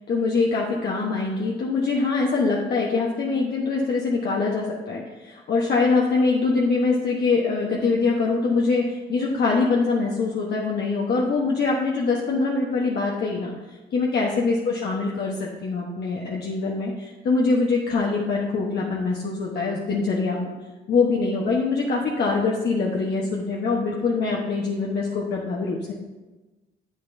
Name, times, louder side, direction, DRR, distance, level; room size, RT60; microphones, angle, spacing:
voice 1, 0.1-13.5 13.9-20.5 20.9-25.9, left 4 dB, 55° left, -2 dB, 1.1 m, -23 dB
10.0 x 8.0 x 2.7 m, 1.2 s
cardioid pair, 90°, 20 cm